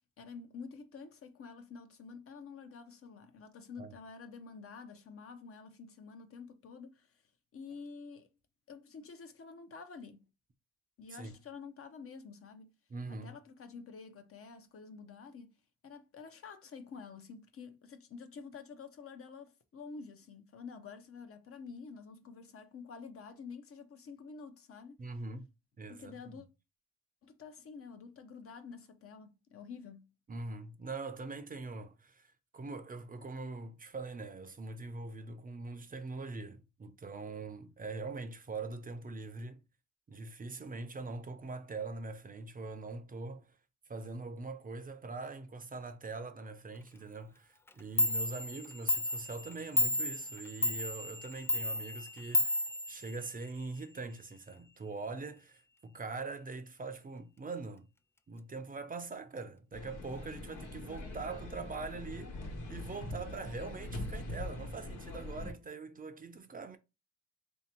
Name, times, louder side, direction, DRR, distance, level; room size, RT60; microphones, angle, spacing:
voice 1, 0.2-7.1 7.5-8.3 8.7-10.3 11.0-12.7 13.1-15.5 15.8-25.0 25.9-26.5 27.2-30.1, left 5 dB, 45° left, 0.8 m, -49 dB
voice 2, 12.9-13.3 25.0-25.5 25.8-26.4 30.3-39.6 40.1-43.5 43.9-57.9 58.3-62.4 62.7-66.8, right 3 dB, 30° right, 0.6 m, -43 dB
Clock, 47.7-47.8 48.0-53.6, left 1 dB, 10° left, 0.3 m, -33 dB
sound 1, 59.7-65.5, left 2 dB, 85° left, 1.3 m, -42 dB
3.3 x 2.8 x 4.4 m
cardioid pair, 90°, 30 cm